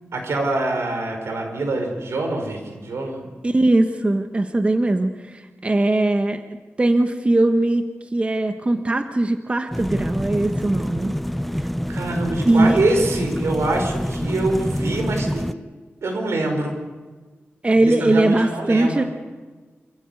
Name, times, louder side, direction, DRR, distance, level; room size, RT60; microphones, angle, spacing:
voice 1, 0.1-3.3 11.9-15.5 16.0-16.8 17.8-19.1, right 2 dB, 85° right, 3 dB, 5.3 m, -24 dB
voice 2, 3.4-6.4 6.8-7.8 8.1-11.1 12.5-12.8 17.6-19.0, right 2 dB, 25° right, 7 dB, 1.2 m, -20 dB
sound 1, 9.7-15.5, equal, ahead, 0.6 m, -26 dB
26.5 x 15.0 x 8.3 m, 1.3 s
wide cardioid pair, 110°, 4 cm